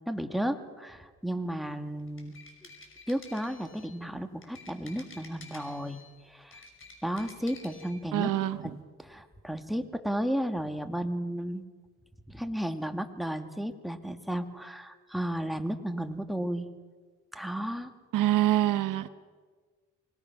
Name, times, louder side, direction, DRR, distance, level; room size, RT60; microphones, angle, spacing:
voice 1, 0.1-2.4 3.1-6.0 6.3-6.6 7.0-8.3 8.6-11.6 12.3-16.7 17.3-17.9, equal, ahead, 2.0 m, -33 dB
sound 1, 2.0-4.0 4.4-6.1 6.4-8.0, left 3 dB, 40° left, 5.9 m, -51 dB
voice 2, 8.1-8.6 18.1-19.1, right 14 dB, 80° right, 0.9 m, -25 dB
25.5 x 20.0 x 6.0 m
cardioid pair, 75°, 31 cm